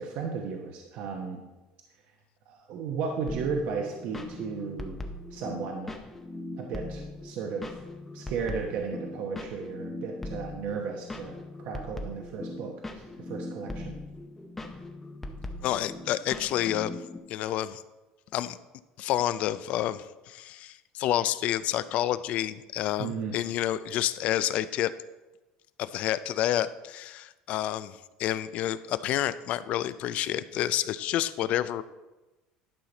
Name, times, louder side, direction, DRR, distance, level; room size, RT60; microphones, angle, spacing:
voice 1, 0.0-1.4 2.5-5.0 5.3-6.0 6.6-7.8 8.1-13.9 23.0-23.3, right 5 dB, 60° right, 1 dB, 1.0 m, -34 dB
sound 1, 3.3-17.2, left 2 dB, 10° left, 0.7 m, -40 dB
voice 2, 15.6-17.0 17.3-17.8 18.3-18.6 19.0-24.9 25.8-31.8, left 12 dB, 50° left, 15 dB, 0.4 m, -29 dB
11.5 x 5.8 x 4.0 m, 1.1 s
cardioid pair, 150°, 3 cm